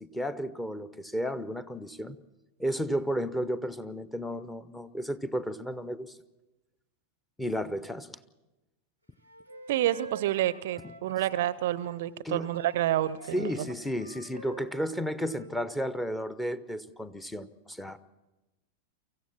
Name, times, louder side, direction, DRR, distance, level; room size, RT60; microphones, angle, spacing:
voice 1, 0.0-2.2 2.6-6.2 7.4-8.2 10.8-10.9 12.2-12.5 13.3-18.0, equal, 5° left, 15 dB, 0.9 m, -33 dB
Wind instrument woodwind instrument, 9.2-12.0 12.4-15.5, right 3 dB, 90° left, 2.3 m, -48 dB
voice 2, 9.7-13.6, right 13 dB, 55° right, 20 dB, 0.6 m, -29 dB
24.5 x 15.5 x 7.4 m, 1.1 s
figure-of-eight pair, 90°, 0 cm